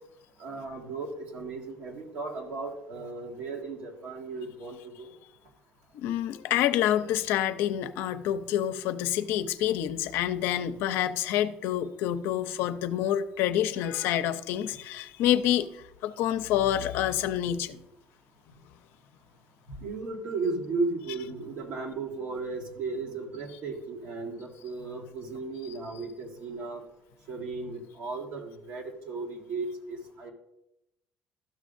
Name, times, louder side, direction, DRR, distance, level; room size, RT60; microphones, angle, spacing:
voice 1, 0.4-5.1 19.7-26.8 27.3-30.3, right 3 dB, 75° right, 0 dB, 1.8 m, -35 dB
voice 2, 5.9-17.8, left 11 dB, 80° left, 10 dB, 0.5 m, -27 dB
12.5 x 6.2 x 2.5 m, 0.85 s
supercardioid pair, 95°, 4 cm